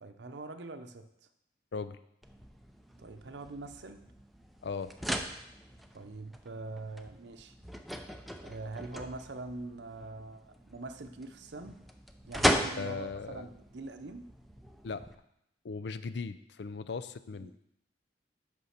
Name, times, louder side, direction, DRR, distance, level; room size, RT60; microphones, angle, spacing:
voice 1, 0.0-1.1 3.0-4.0 5.9-7.5 8.4-11.8 12.2-14.3 17.4-17.6, right 2 dB, 70° right, 8 dB, 0.7 m, -43 dB
sound 1, 2.2-15.1, equal, ahead, 0.5 m, -38 dB
voice 2, 12.8-13.5 14.8-15.1 15.6-17.5, left 4 dB, 70° left, 13 dB, 0.5 m, -38 dB
8.3 x 5.3 x 5.8 m, 0.79 s
head